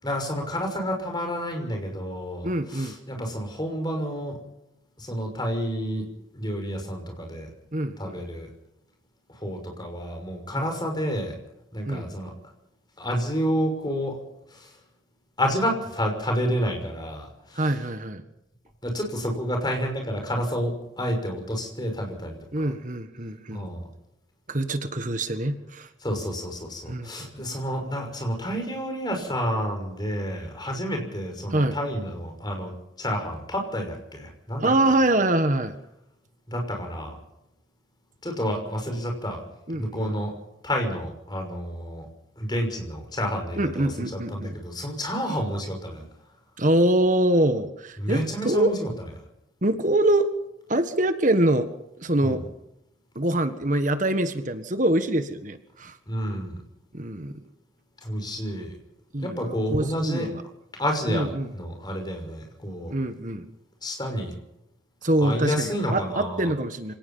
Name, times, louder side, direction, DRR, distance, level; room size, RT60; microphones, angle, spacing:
voice 1, 0.0-4.4 5.0-6.1 6.3-7.5 8.0-8.5 9.4-11.4 11.7-12.3 13.0-14.2 14.5-14.7 15.4-17.7 18.8-22.7 23.5-23.9 26.0-34.7 36.5-37.2 38.2-39.4 39.7-40.4 40.6-42.1 42.4-46.1 48.0-49.1 52.2-52.4 56.1-56.6 58.0-58.8 59.2-60.3 60.7-63.0 63.8-64.3 65.2-66.5, equal, 20° left, 3 dB, 6.1 m, -29 dB
voice 2, 2.4-2.9 7.7-8.2 10.6-10.7 11.9-12.1 17.5-18.2 22.5-23.7 24.5-25.9 26.9-27.3 31.5-31.8 34.6-35.7 39.7-40.1 43.6-44.5 46.6-48.7 49.6-50.3 50.7-51.7 52.0-52.4 53.1-55.9 56.9-57.3 59.1-60.4 61.1-61.5 62.9-63.4 65.0-66.9, right 1 dB, 40° right, 9 dB, 1.6 m, -24 dB
26.5 x 18.0 x 5.7 m, 0.83 s
head